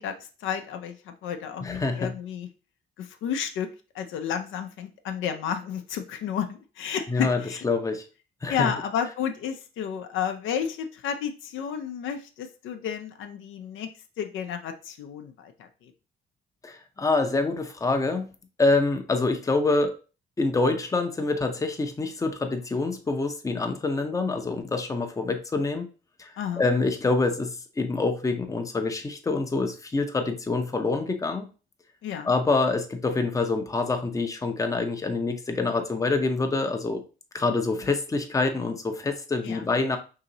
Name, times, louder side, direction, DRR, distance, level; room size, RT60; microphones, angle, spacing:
voice 1, 0.0-2.5 3.0-3.7 3.9-7.6 8.5-13.9 14.2-15.9 26.4-26.7 32.0-32.3 39.4-39.7, left 8 dB, 80° left, 6 dB, 0.5 m, -32 dB
voice 2, 1.6-2.1 7.1-8.0 8.4-8.7 16.6-18.3 18.6-19.9 20.4-25.9 26.2-31.5 32.2-37.0 37.3-40.0, left 3 dB, 15° left, 5 dB, 0.6 m, -26 dB
2.9 x 2.8 x 3.8 m, 0.34 s
cardioid pair, 90°, 20 cm